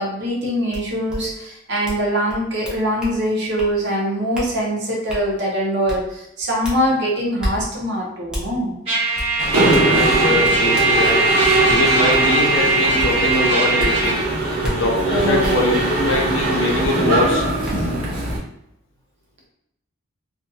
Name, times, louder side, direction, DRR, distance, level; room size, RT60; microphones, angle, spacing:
voice 1, 0.0-8.7 15.1-15.6, equal, 55° right, -3 dB, 0.6 m, -23 dB
sound 1, 0.7-0.8 1.1-1.2 1.8-2.0 2.3-3.1 3.6-3.7 4.3-4.5 5.1-5.2 5.9-6.0 6.6-6.8 7.4-7.5 8.3-8.4 9.2-9.3 9.7-11.5 12.1-12.2 13.0-13.1 13.8-13.9 14.6-14.7 15.4-15.5 17.0-17.1 17.6-17.7, equal, 5° right, 0.5 m, -29 dB
Trumpet, 8.9-14.2, right 3 dB, 30° right, 1.2 m, -20 dB
Mechanisms, 9.4-18.4, right 2 dB, 90° right, 0.7 m, -21 dB
voice 2, 9.7-11.3 11.7-14.2 14.6-17.5, left 2 dB, 60° left, 0 dB, 0.6 m, -22 dB
2.6 x 2.5 x 2.2 m, 0.80 s
head